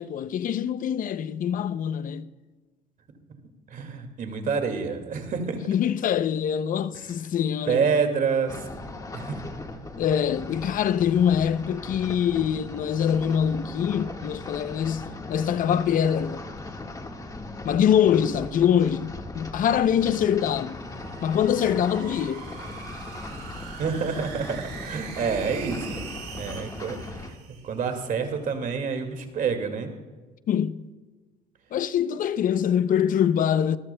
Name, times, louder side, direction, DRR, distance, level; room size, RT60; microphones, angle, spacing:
voice 1, 0.0-2.3 5.7-7.9 10.0-16.4 17.6-20.8 21.2-22.4 30.5-30.9 31.7-33.8, left 9 dB, 55° left, 0.6 m, -24 dB
voice 2, 3.7-5.6 7.7-8.6 9.1-9.4 23.8-26.1 26.4-29.9, right 5 dB, 50° right, 2.1 m, -28 dB
sound 1, 8.5-27.3, left 2 dB, 20° left, 1.6 m, -39 dB
sound 2, 20.6-28.1, right 6 dB, 85° right, 4.1 m, -42 dB
24.5 x 14.0 x 2.2 m
cardioid pair, 110°, 17 cm